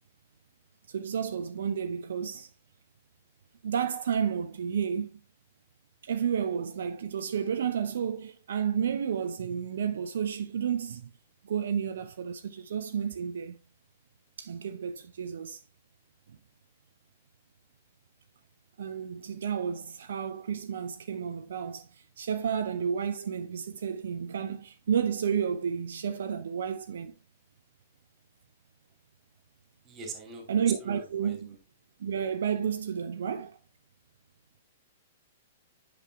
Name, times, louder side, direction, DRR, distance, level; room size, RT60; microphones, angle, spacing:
voice 1, 0.9-2.5 3.6-5.2 6.0-11.1 11.4-13.6 14.4-15.6 16.3-16.4 18.8-27.1 30.5-31.6 32.0-33.6, right 7 dB, 60° right, 0.4 m, -31 dB
voice 2, 29.9-30.4 30.8-31.4, right 3 dB, 20° right, 2.5 m, -43 dB
8.9 x 6.0 x 2.3 m
figure-of-eight pair, 110°, 0 cm